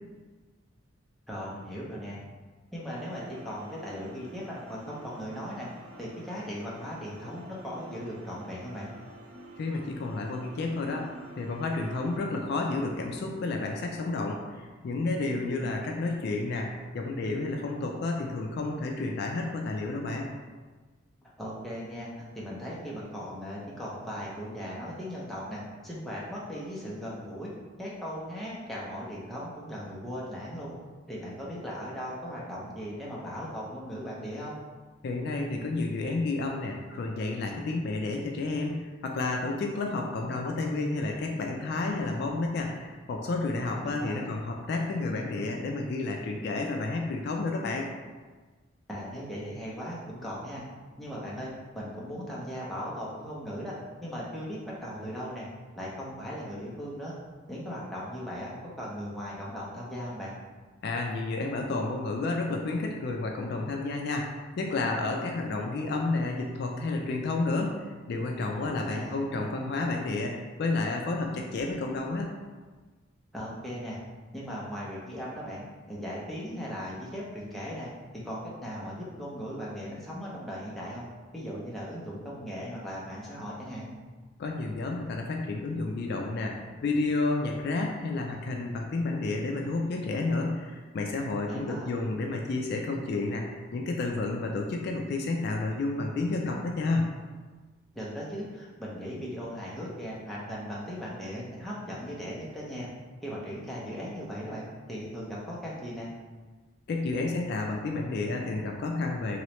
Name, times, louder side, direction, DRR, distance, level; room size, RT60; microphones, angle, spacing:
voice 1, 1.3-2.2 2.7-5.7 6.0-8.9 15.5-15.7 21.4-27.5 27.8-30.7 31.1-34.6 43.6-44.2 48.9-50.6 51.0-53.7 54.0-55.5 55.7-57.1 57.5-60.3 68.6-69.2 73.3-74.0 74.3-75.6 75.9-81.0 81.3-83.9 91.5-91.9 98.0-102.9 103.2-106.1, equal, ahead, -7 dB, 0.6 m, -38 dB
sound 1, 2.9-12.2, right 1 dB, 70° right, 0.5 m, -48 dB
voice 2, 9.6-11.1 11.4-20.3 35.0-47.9 60.8-67.8 68.1-72.3 84.4-97.1 106.9-109.4, left 3 dB, 55° left, 1 dB, 0.3 m, -31 dB
3.1 x 3.0 x 3.0 m, 1.3 s
head